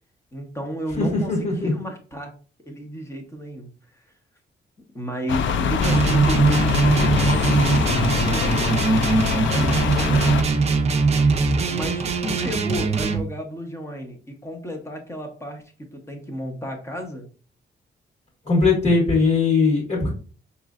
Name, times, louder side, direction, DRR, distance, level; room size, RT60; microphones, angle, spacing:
voice 1, 0.3-2.3 2.7-4.1 4.9-10.4 11.7-17.3, equal, 15° left, 3 dB, 1.0 m, -33 dB
voice 2, 0.9-1.7 18.4-20.1, left 3 dB, 35° left, -1 dB, 1.8 m, -20 dB
sound 1, 5.3-10.4, left 6 dB, 85° left, 0.5 m, -23 dB
sound 2, 5.8-13.2, right 4 dB, 35° right, 0.5 m, -21 dB
6.0 x 3.1 x 2.4 m, 0.38 s
wide cardioid pair, 175°, 19 cm